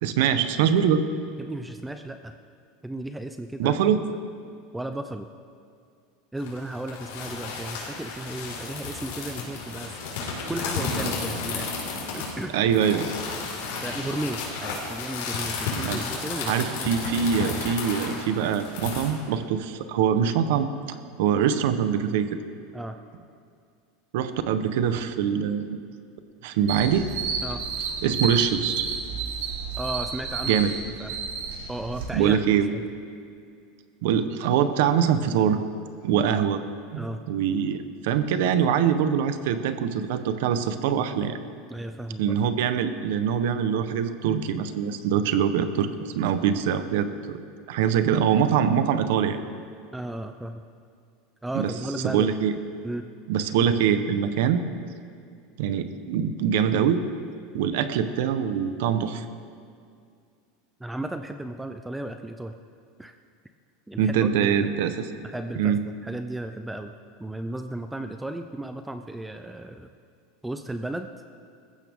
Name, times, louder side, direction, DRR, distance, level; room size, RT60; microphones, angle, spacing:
voice 1, 0.0-1.0 3.6-4.0 12.5-13.1 15.8-16.0 16.5-22.4 24.1-25.8 26.4-27.1 28.0-28.8 30.5-30.7 32.1-32.7 34.0-35.6 36.0-36.6 36.9-41.4 42.2-47.4 47.7-49.4 51.5-51.7 52.0-52.6 53.3-54.6 55.6-57.0 57.5-59.2 64.0-65.1 65.6-65.8, right 8 dB, 60° right, 10 dB, 0.9 m, -24 dB
voice 2, 1.4-2.3 2.8-3.7 4.7-5.3 6.3-10.0 10.5-11.7 12.1-12.5 13.8-16.5 16.8-16.9 22.7-23.0 27.4-27.6 29.8-30.6 31.0-31.1 31.7-32.4 32.7-32.8 37.0-37.2 41.7-42.2 49.9-50.6 51.4-52.3 52.8-53.1 60.8-62.5 63.0-63.1 63.9-64.3 64.6-64.7 65.2-65.8 66.0-66.9 67.2-69.9 70.4-71.1, right 1 dB, 5° right, 7 dB, 0.4 m, -34 dB
sound 1, 6.4-19.1, left 4 dB, 70° left, 4.6 m, -33 dB
sound 2, 26.7-32.0, right 5 dB, 75° right, 2.9 m, -31 dB
21.0 x 15.0 x 3.6 m, 2.3 s
supercardioid pair, 180°, 0 cm